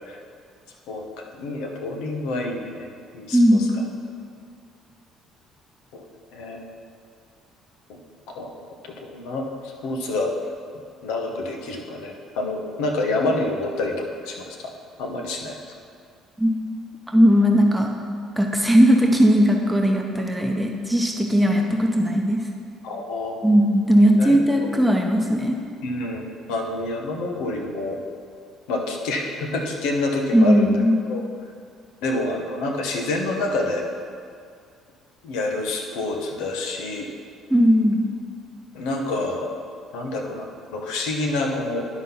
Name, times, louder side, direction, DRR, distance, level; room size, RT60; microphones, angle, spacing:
voice 1, 1.3-3.6 5.9-6.6 8.3-8.5 8.8-10.3 11.0-14.6 15.0-15.6 22.8-23.4 24.2-24.7 25.8-28.0 28.7-30.7 31.1-31.2 32.0-33.8 35.2-37.1 38.7-39.6 39.9-41.9, left 2 dB, 90° left, 2 dB, 1.1 m, -28 dB
voice 2, 3.3-3.6 16.4-16.5 17.1-17.9 18.4-22.4 23.4-25.6 30.3-31.0 37.5-38.1, equal, 5° right, 1 dB, 0.8 m, -18 dB
11.0 x 4.1 x 5.6 m, 2.2 s
cardioid pair, 95°, 0 cm